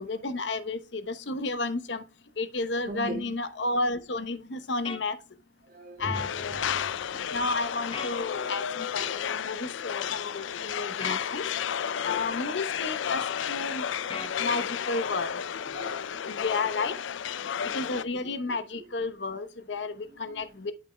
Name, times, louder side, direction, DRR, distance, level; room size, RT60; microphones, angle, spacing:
voice 1, 0.0-2.0 2.4-5.2 6.0-6.7 7.3-11.4 12.0-13.8 14.4-15.4 16.3-16.9 17.7-20.7, left 3 dB, 70° left, 0.9 m, -32 dB
voice 2, 2.9-3.3 5.7-7.4 8.3-8.5 9.1-9.4 13.5-13.6 14.3-14.5 15.7-16.4 17.4-17.9 20.3-20.4, right 1 dB, 50° right, 2.5 m, -41 dB
sound 1, 4.8-5.0 7.9-8.2 11.0-11.2 14.1-14.4, left 4 dB, 30° left, 0.9 m, -37 dB
sound 2, 6.1-18.0, left 8 dB, 90° left, 0.4 m, -32 dB
8.8 x 8.4 x 2.2 m
head